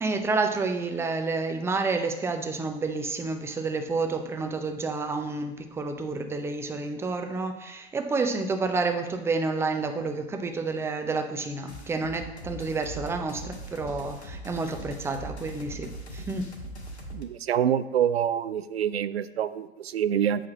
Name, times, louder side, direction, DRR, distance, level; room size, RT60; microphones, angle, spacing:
voice 1, 0.0-16.5, right 3 dB, 10° right, 6 dB, 0.5 m, -29 dB
sound 1, 11.7-17.2, right 1 dB, 80° left, 1.7 m, -40 dB
voice 2, 17.1-20.5, right 9 dB, 70° right, 14 dB, 0.5 m, -26 dB
8.4 x 4.3 x 6.1 m, 1.0 s
figure-of-eight pair, 105°, 33 cm